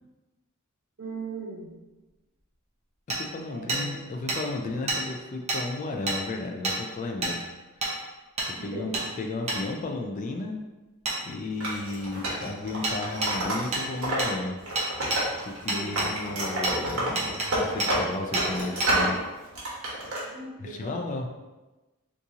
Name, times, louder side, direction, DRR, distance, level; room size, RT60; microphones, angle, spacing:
voice 1, 1.0-1.7 3.5-4.0 8.6-9.0 15.7-16.4 20.2-21.0, right 3 dB, 60° right, -6 dB, 1.2 m, -39 dB
voice 2, 3.1-7.5 8.6-8.9 9.2-10.6 11.2-14.5 15.4-19.2 20.6-21.3, left 2 dB, 35° left, 3 dB, 0.3 m, -34 dB
Hammer, 3.1-3.2 3.7-3.8 4.3-4.4 4.9-5.0 5.5-5.6 6.1-6.2 6.6-6.8 7.2-7.4 7.8-7.9 8.4-8.5 8.9-9.1 9.5-9.6 11.1-11.2 12.8-13.0 13.2-13.3 13.7-13.9 14.2-14.3 14.8-15.2 15.7-16.1 16.6-16.8 17.2-17.5 17.8-17.9 18.3-18.5 18.8-18.9, right 2 dB, 30° right, 0.7 m, -28 dB
Wood, 11.6-14.3 14.6-15.6 15.9-19.2 19.5-20.2, right 1 dB, 80° right, 1.0 m, -29 dB
2.8 x 2.6 x 3.6 m, 1.1 s
head